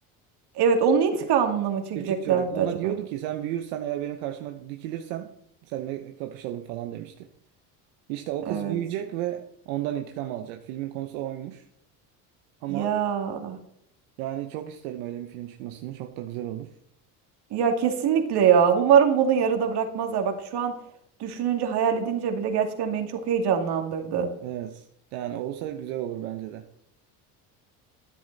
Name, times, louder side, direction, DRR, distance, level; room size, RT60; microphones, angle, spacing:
voice 1, 0.5-2.9 8.5-8.8 12.7-13.6 17.5-20.7 21.2-24.3, right 7 dB, 60° right, 4 dB, 2.5 m, -23 dB
voice 2, 1.9-5.3 5.6-7.3 8.1-11.7 12.6-12.9 14.2-16.7 24.4-26.7, right 12 dB, 85° right, 6 dB, 1.0 m, -33 dB
12.5 x 10.0 x 4.1 m, 0.73 s
supercardioid pair, 85°, 44 cm